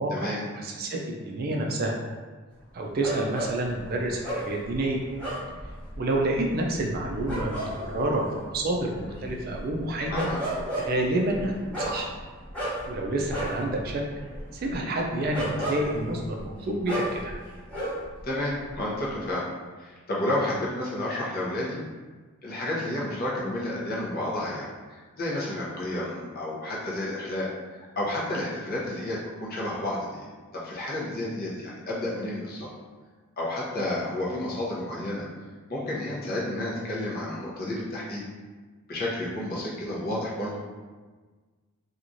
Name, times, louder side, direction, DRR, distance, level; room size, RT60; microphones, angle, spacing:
voice 1, 0.0-2.0 2.7-5.0 6.0-10.3 10.8-12.1 12.9-14.0 14.5-17.3, right 1 dB, 45° right, 0 dB, 0.4 m, -28 dB
sound 1, 3.0-18.2 18.5-19.3, right 1 dB, 5° left, 0.9 m, -35 dB
voice 2, 10.1-10.4 18.2-19.5 19.8-21.8 22.4-27.5 27.8-30.3 30.5-32.7 33.4-35.2 35.7-38.2 38.9-40.5, left 1 dB, 45° left, -5 dB, 0.7 m, -31 dB
3.0 x 2.4 x 2.5 m, 1.4 s
head